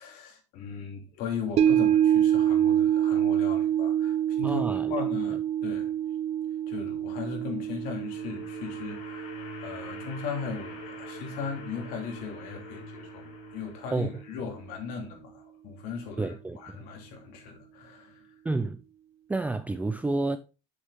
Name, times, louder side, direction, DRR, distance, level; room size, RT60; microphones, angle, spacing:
voice 1, 0.0-5.9 6.7-9.4 9.6-18.2, left 5 dB, 70° left, 2.8 m, -38 dB
sound 1, 1.6-11.9 12.3-12.4, right 10 dB, 45° right, 0.8 m, -27 dB
voice 2, 4.4-5.1 13.9-14.1 16.2-16.8 18.4-18.8 19.3-20.4, right 2 dB, 10° right, 0.5 m, -29 dB
sound 2, 7.5-14.6, left 7 dB, 90° left, 3.3 m, -46 dB
7.5 x 6.5 x 3.6 m
supercardioid pair, 110°, 15 cm